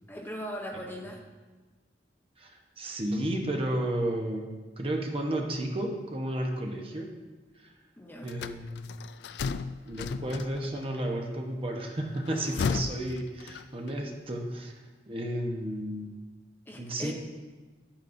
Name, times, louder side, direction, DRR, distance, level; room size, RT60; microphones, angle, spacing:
voice 1, 0.1-1.2 8.0-8.3 16.7-17.1, equal, 10° left, 1 dB, 0.7 m, -39 dB
voice 2, 2.4-7.2 7.6-7.7 8.2-9.0 9.9-14.8 15.1-16.2 16.8-17.1, right 1 dB, 30° right, 2 dB, 1.0 m, -32 dB
sound 1, 8.3-10.8 12.2-14.0, left 5 dB, 65° left, 0.3 m, -34 dB
11.0 x 8.9 x 2.6 m, 1.3 s
head